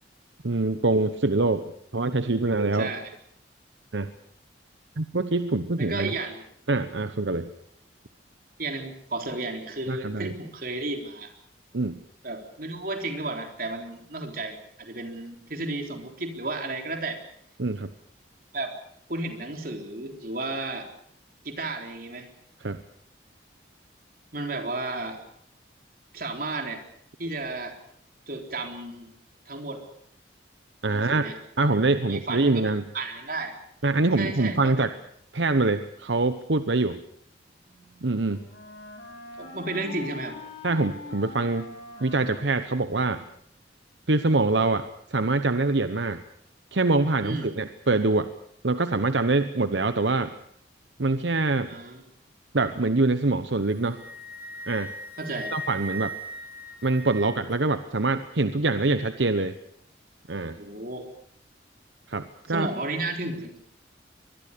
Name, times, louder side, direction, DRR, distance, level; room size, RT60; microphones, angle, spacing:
voice 1, 0.4-2.9 3.9-4.1 5.0-6.1 6.7-7.5 9.9-10.3 11.7-12.0 17.6-17.9 22.6-22.8 30.8-31.2 31.6-32.9 33.8-34.9 35.3-37.0 38.0-38.5 40.6-41.7 42.0-43.2 44.1-46.2 46.7-48.3 48.6-50.3 51.0-51.7 52.5-54.0 54.7-54.9 55.5-56.1 56.8-59.5 60.3-60.6 62.1-62.7, right 3 dB, 75° right, 10 dB, 1.0 m, -24 dB
voice 2, 2.7-3.1 5.8-6.5 8.6-11.3 12.2-17.2 18.5-18.7 19.1-20.9 21.4-22.3 24.3-25.2 26.1-26.8 27.2-27.8 28.3-29.1 29.5-29.8 30.9-31.4 32.1-33.5 34.2-34.8 39.4-40.4 47.2-47.6 51.7-52.0 55.2-55.5 60.6-61.1 62.5-63.6, right 2 dB, 50° right, 4 dB, 3.9 m, -33 dB
Wind instrument woodwind instrument, 37.6-43.4, left 2 dB, 85° left, 7.4 m, -43 dB
Wind instrument woodwind instrument 2, 53.6-57.5, right 1 dB, 10° right, 6.8 m, -38 dB
24.0 x 21.5 x 6.9 m, 0.66 s
head